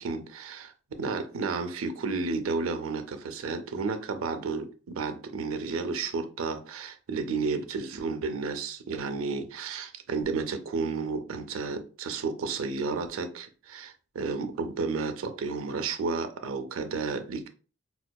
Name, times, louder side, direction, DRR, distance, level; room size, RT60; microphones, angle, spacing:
voice 1, 0.0-17.5, right 4 dB, 90° right, 0.5 m, -32 dB
4.4 x 2.3 x 2.2 m
head